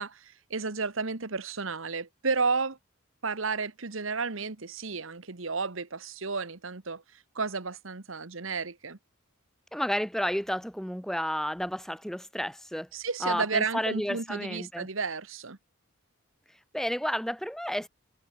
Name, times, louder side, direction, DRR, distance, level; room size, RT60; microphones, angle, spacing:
voice 1, 0.0-2.8 3.2-9.0 12.9-15.6, right 4 dB, 70° right, 1.4 m, -32 dB
voice 2, 9.7-12.9 13.2-14.9 16.7-17.9, equal, ahead, 1.6 m, -31 dB
head